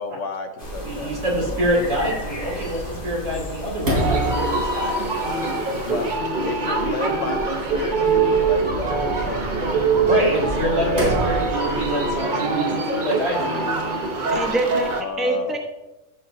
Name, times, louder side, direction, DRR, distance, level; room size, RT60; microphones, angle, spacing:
voice 1, 0.0-1.1 5.8-6.2 6.5-9.5 14.9-15.6, left 4 dB, 65° left, 7 dB, 1.2 m, -32 dB
sound 1, 0.6-6.2, left 1 dB, 40° left, 2.1 m, -37 dB
Sliding door, 0.6-12.1, right 1 dB, 85° right, 4.0 m, -31 dB
voice 2, 0.8-5.0 9.9-13.6, equal, 70° right, -3 dB, 3.4 m, -25 dB
sound 2, 3.9-15.0, right 3 dB, 40° right, 0.9 m, -23 dB
voice 3, 13.8-14.9 15.2-15.6, right 2 dB, ahead, 1 dB, 1.0 m, -25 dB
14.5 x 7.5 x 2.7 m, 0.99 s
omnidirectional pair, 1.4 m